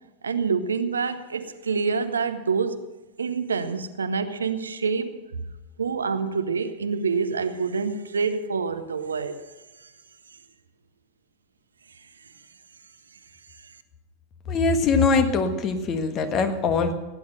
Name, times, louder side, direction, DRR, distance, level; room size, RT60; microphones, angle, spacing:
voice 1, 0.2-2.8 3.2-5.2 5.8-9.4 9.8-9.9, right 5 dB, 70° right, 10 dB, 0.9 m, -27 dB
voice 2, 14.5-16.9, left 4 dB, 30° left, 8 dB, 1.5 m, -22 dB
17.0 x 9.8 x 6.4 m, 1.1 s
figure-of-eight pair, 90°, 0 cm